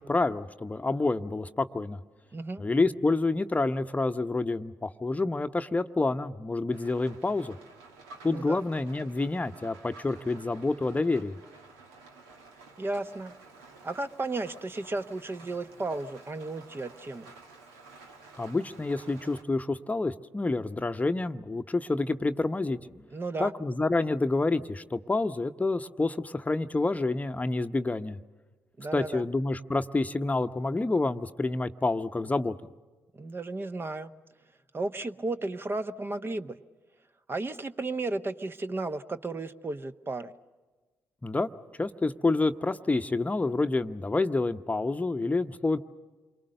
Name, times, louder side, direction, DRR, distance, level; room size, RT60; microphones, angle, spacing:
voice 1, 0.0-2.0 2.6-7.6 8.2-11.4 18.4-23.0 23.4-28.2 28.9-32.5 41.2-41.5 41.8-45.8, left 3 dB, 20° left, 9 dB, 0.9 m, -28 dB
voice 2, 2.3-2.6 8.3-8.6 12.8-13.3 13.8-17.3 23.1-23.5 28.8-29.2 33.1-34.1 34.7-36.6 37.3-40.3, right 2 dB, 30° right, 10 dB, 1.1 m, -34 dB
Rain, 6.7-19.4, right 3 dB, 80° right, 1.8 m, -51 dB
28.5 x 23.5 x 6.7 m, 1.3 s
hypercardioid pair, 45°, 7 cm